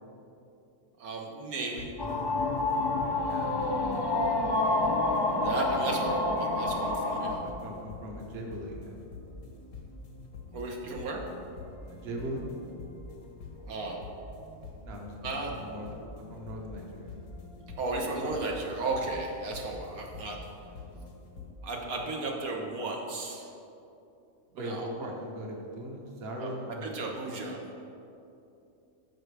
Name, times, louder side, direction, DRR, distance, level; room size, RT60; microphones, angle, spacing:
voice 1, 1.0-1.9 5.4-7.4 10.5-11.2 13.6-14.0 15.2-15.5 17.8-20.4 21.6-23.5 24.5-24.9 26.4-27.6, right 2 dB, 85° right, 0 dB, 1.5 m, -34 dB
sound 1, 1.6-21.5, left 2 dB, 85° left, 1.7 m, -46 dB
sound 2, 2.0-7.4, left 2 dB, 40° left, 0.3 m, -28 dB
voice 2, 3.2-3.6 7.2-9.0 11.9-12.5 14.8-17.1 24.6-26.9, right 1 dB, 50° right, 0 dB, 1.2 m, -40 dB
13.5 x 5.9 x 3.3 m, 2.7 s
omnidirectional pair, 1.5 m